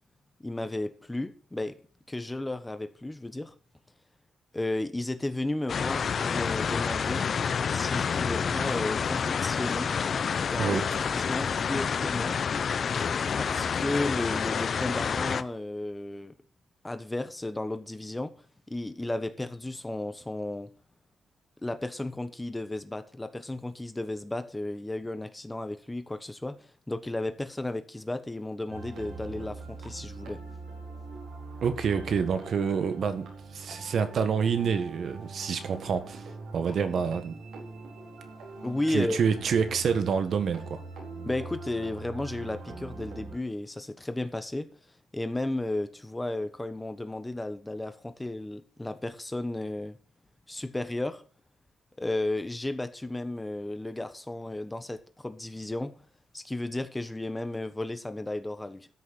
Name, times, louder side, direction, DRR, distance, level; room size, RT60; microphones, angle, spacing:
voice 1, 0.4-1.8 2.1-3.5 4.5-7.2 7.7-9.9 10.4-10.8 11.1-12.4 13.4-16.3 16.8-18.3 18.7-20.7 21.6-26.6 26.9-30.4 38.6-39.2 41.2-44.7 45.1-50.0 50.5-51.2 52.0-55.9 56.3-58.9, left 2 dB, 10° left, 1.2 m, -33 dB
sound 1, 5.7-15.4, left 6 dB, 50° left, 0.7 m, -28 dB
sound 2, 28.7-43.4, right 3 dB, 85° right, 4.7 m, -43 dB
voice 2, 31.6-36.3 36.5-37.3 38.9-40.8, right 6 dB, 55° right, 1.6 m, -27 dB
13.5 x 6.4 x 6.4 m
cardioid pair, 110°, 0 cm